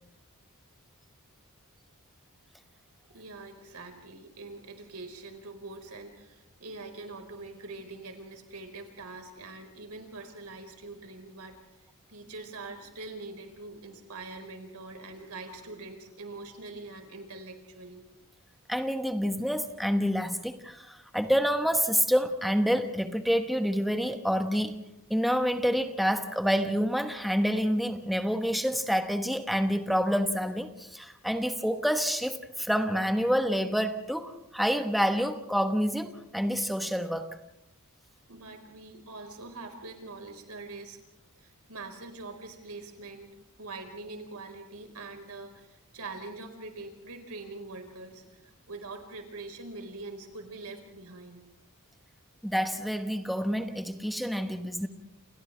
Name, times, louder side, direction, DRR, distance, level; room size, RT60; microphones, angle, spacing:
voice 1, 3.1-11.6 12.1-18.0 38.3-41.0 41.4-43.3 43.6-51.4, right 3 dB, 90° right, 5 dB, 4.6 m, -43 dB
voice 2, 18.7-24.8 25.1-37.3 52.4-54.9, equal, ahead, 6 dB, 1.1 m, -28 dB
29.0 x 29.0 x 3.4 m, 0.84 s
head